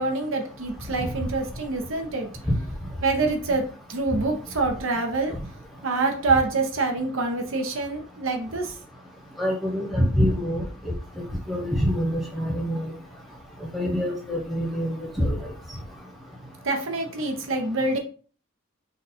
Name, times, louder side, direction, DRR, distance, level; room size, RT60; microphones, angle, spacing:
voice 1, 0.0-2.3 3.0-3.6 3.9-5.3 5.8-8.7 16.6-18.0, right 3 dB, 75° right, 4 dB, 0.8 m, -26 dB
voice 2, 9.4-10.9 11.5-12.9 13.7-15.4, equal, ahead, -2 dB, 0.9 m, -25 dB
3.9 x 2.4 x 4.2 m, 0.40 s
head